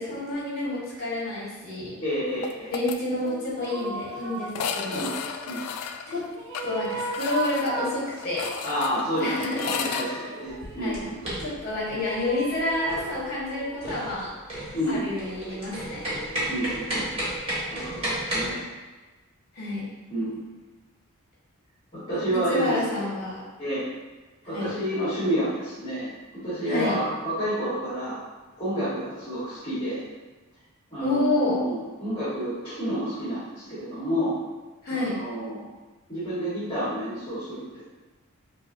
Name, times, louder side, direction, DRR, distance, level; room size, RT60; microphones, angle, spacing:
voice 1, 0.0-1.9 2.7-5.0 6.1-6.3 6.6-8.5 9.2-9.8 10.8-11.0 11.4-14.3 14.9-16.1 19.5-19.8 22.3-23.4 24.4-24.7 26.6-26.9 31.0-31.6 34.8-35.2, left 2 dB, 45° left, -6 dB, 1.4 m, -29 dB
voice 2, 2.0-2.7 4.9-5.1 5.4-5.6 8.6-11.2 14.7-15.1 16.5-17.2 17.7-18.6 20.1-20.4 21.9-23.1 23.6-23.8 24.4-28.2 28.6-30.0 30.9-34.3 34.9-35.7 36.1-37.9, equal, 25° left, -13 dB, 1.4 m, -29 dB
sound 1, 2.4-3.0 3.3-3.4 3.6-3.7 4.5-10.1, left 7 dB, 85° left, 0.3 m, -34 dB
sound 2, 3.2-5.4 6.1-8.5 9.0-10.9 12.1-14.0 14.8-17.1, right 2 dB, 65° right, 0.6 m, -37 dB
sound 3, 10.4-18.5, right 1 dB, 25° right, 1.3 m, -33 dB
5.4 x 2.2 x 2.6 m, 1.2 s
head